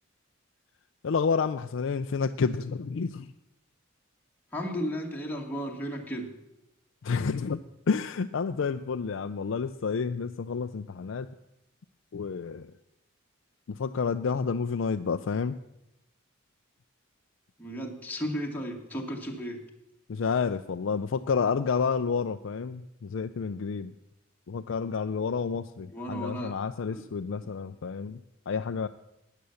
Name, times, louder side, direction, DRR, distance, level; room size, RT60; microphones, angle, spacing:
voice 1, 1.0-3.3 7.0-7.6 7.9-11.3 12.1-12.7 13.7-15.6 20.1-23.9 24.5-28.9, left 5 dB, 65° left, 8 dB, 0.4 m, -30 dB
voice 2, 4.5-6.3 17.6-19.6 25.9-26.5 26.9-27.0, equal, 10° left, -1 dB, 1.8 m, -34 dB
13.0 x 9.2 x 7.0 m, 0.89 s
head